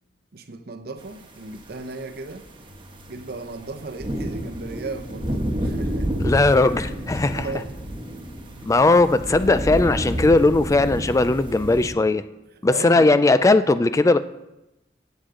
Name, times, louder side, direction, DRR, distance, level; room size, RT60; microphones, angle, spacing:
voice 1, 0.3-2.5 3.1-6.3 7.3-7.7 12.5-13.1, right 3 dB, 60° right, 0.7 m, -36 dB
sound 1, 1.5-1.6 2.1-11.9, right 1 dB, 30° right, 1.2 m, -29 dB
sound 2, 2.7-10.3, left 1 dB, 80° left, 1.1 m, -47 dB
voice 2, 6.2-7.5 8.7-12.2 12.6-14.2, left 2 dB, 20° left, 0.3 m, -18 dB
15.5 x 8.1 x 3.8 m
head